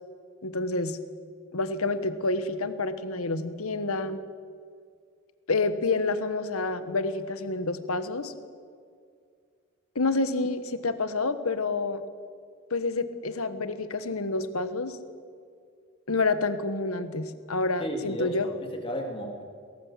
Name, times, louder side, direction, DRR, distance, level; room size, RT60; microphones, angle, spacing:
voice 1, 0.4-1.0 1.5-4.2 5.5-8.3 9.9-12.0 12.7-15.0 16.1-18.5, left 3 dB, 85° left, 11 dB, 1.3 m, -28 dB
voice 2, 17.8-19.4, equal, 25° left, 1 dB, 3.1 m, -34 dB
20.5 x 17.5 x 7.4 m, 2.2 s
head